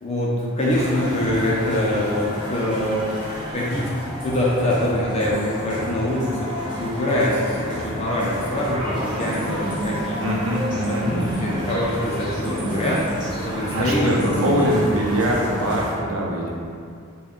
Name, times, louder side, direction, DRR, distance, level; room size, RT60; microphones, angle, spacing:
voice 1, 0.0-3.9 4.2-6.5 6.8-10.2 10.7-13.0 13.4-14.6, left 1 dB, 25° left, -5 dB, 0.4 m, -24 dB
sound 1, 0.6-15.9, equal, 20° right, 0.6 m, -30 dB
voice 2, 10.2-11.0 13.7-16.5, equal, 75° right, -3 dB, 0.6 m, -23 dB
3.8 x 2.2 x 3.5 m, 2.3 s
head